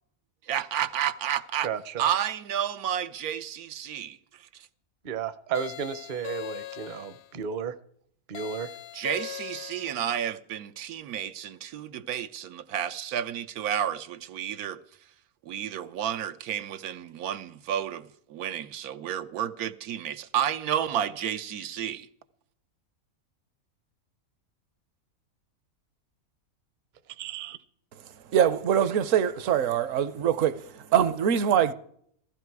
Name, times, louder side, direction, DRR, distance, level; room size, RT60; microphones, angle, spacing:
voice 1, 0.5-1.7 2.0-4.2 8.9-14.8 15.5-22.1, right 10 dB, 90° right, 1.2 m, -31 dB
voice 2, 1.6-2.0 5.0-7.7 8.3-8.7 27.2-27.6, right 7 dB, 45° right, 0.6 m, -33 dB
sound 1, 5.5-7.3 8.3-10.1, left 12 dB, 75° left, 1.1 m, -40 dB
voice 3, 28.3-31.7, right 9 dB, 65° right, 1.1 m, -23 dB
15.0 x 14.0 x 4.7 m
omnidirectional pair, 1.5 m